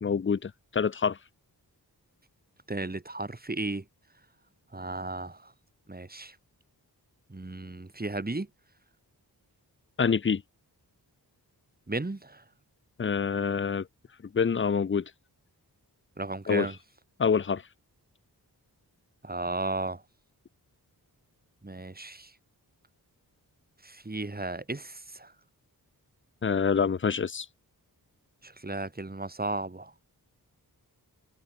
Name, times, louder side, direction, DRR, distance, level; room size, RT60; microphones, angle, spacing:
voice 1, 0.0-1.2 10.0-10.4 13.0-13.9 14.3-15.1 16.5-16.7 17.2-17.6 26.4-27.5, left 6 dB, 30° left, 0.6 m, -26 dB
voice 2, 2.7-3.8 4.7-5.5 5.9-6.4 7.3-8.5 11.9-12.4 16.2-16.7 19.2-20.0 21.6-22.3 23.8-25.3 28.4-29.9, right 2 dB, 25° right, 3.9 m, -34 dB
wide cardioid pair, 105°, 39 cm